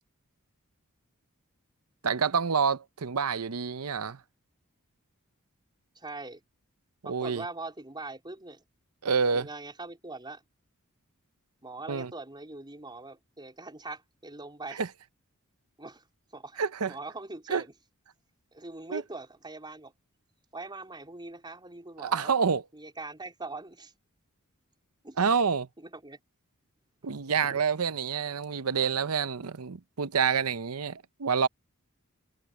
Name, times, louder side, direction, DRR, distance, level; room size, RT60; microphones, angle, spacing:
voice 1, 2.0-4.2 7.1-7.4 9.0-9.5 11.9-12.1 14.8-14.9 16.6-16.9 17.5-17.6 18.9-19.0 22.0-22.6 25.2-25.7 27.0-31.5, right 6 dB, 80° right, 0.7 m, -27 dB
voice 2, 6.0-6.4 7.0-8.6 9.3-10.4 11.6-14.8 15.8-16.1 16.3-16.6 16.9-17.7 18.5-19.9 20.5-22.3 22.7-23.9 25.0-25.2 25.8-26.2 27.4-27.6, right 2 dB, 20° right, 4.2 m, -42 dB
head